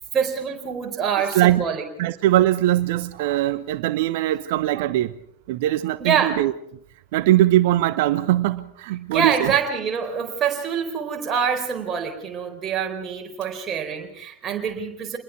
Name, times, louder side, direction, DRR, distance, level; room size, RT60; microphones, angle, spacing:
voice 1, 0.1-1.8 6.0-6.4 9.1-15.2, right 7 dB, 25° right, 2 dB, 4.4 m, -25 dB
voice 2, 1.3-1.6 2.0-5.1 5.5-6.5 7.1-9.5, right 14 dB, 50° right, 15 dB, 0.9 m, -21 dB
28.0 x 20.5 x 4.8 m, 0.68 s
figure-of-eight pair, 90°, 0 cm